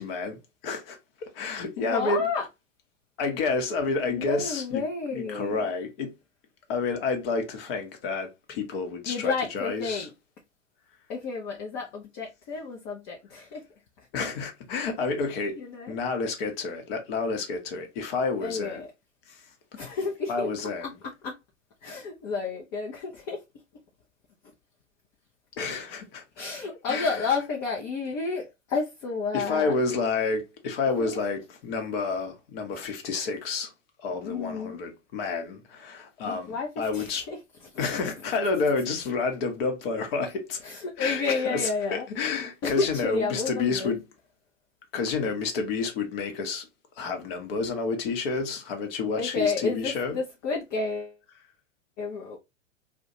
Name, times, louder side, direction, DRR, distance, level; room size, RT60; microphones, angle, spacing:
voice 1, 0.0-2.3 3.2-4.8 5.1-6.1 6.7-10.1 14.1-15.6 15.9-18.8 19.3-19.4 20.3-20.9 25.6-26.2 26.9-27.2 29.3-33.7 34.0-37.2 37.8-40.6 41.0-44.0 44.9-46.7 47.0-50.2, left 4 dB, 50° left, 0.9 m, -29 dB
voice 2, 1.8-2.5 4.1-5.6 9.1-10.1 11.1-13.6 15.6-15.9 18.4-18.9 19.7-20.5 21.2-21.4 21.8-23.4 26.4-29.7 31.0-31.2 34.2-34.8 36.3-37.4 37.7-37.9 40.6-42.1 42.6-43.9 49.2-51.1 52.0-52.4, left 4 dB, 30° left, 0.5 m, -31 dB
2.3 x 2.2 x 2.7 m
figure-of-eight pair, 100°, 37 cm